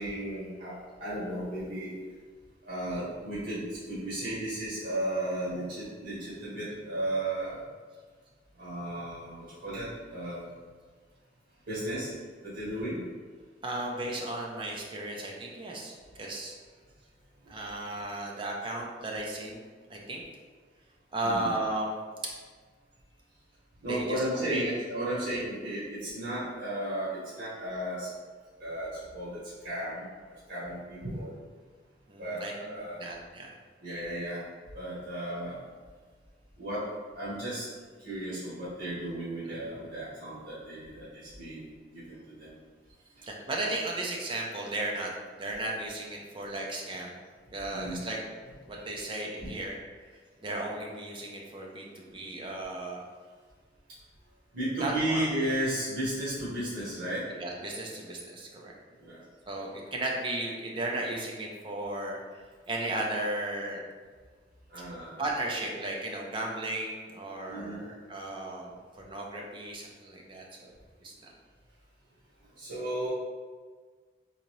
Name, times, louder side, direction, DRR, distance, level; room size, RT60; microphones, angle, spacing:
voice 1, 0.0-1.9 2.6-7.6 8.6-10.4 11.7-12.1 12.4-13.0 21.2-21.5 23.8-28.1 28.6-31.4 32.2-33.0 33.8-34.4 34.7-35.6 36.6-36.9 37.1-37.7 38.0-42.5 47.7-48.0 48.7-48.8 54.5-57.3 59.0-59.2 64.7-65.2 67.5-67.8 72.6-73.1, right 1 dB, 85° right, -10 dB, 1.5 m, -34 dB
voice 2, 13.6-16.5 17.5-19.6 19.9-20.2 21.1-22.0 23.8-24.7 32.1-33.5 39.5-39.7 43.2-45.1 45.4-47.1 47.5-48.2 48.6-49.7 50.1-53.0 54.8-55.2 57.3-58.7 59.5-63.8 65.2-70.7 71.0-71.3, right 2 dB, 25° right, -1 dB, 0.5 m, -35 dB
3.9 x 2.7 x 3.0 m, 1.5 s
head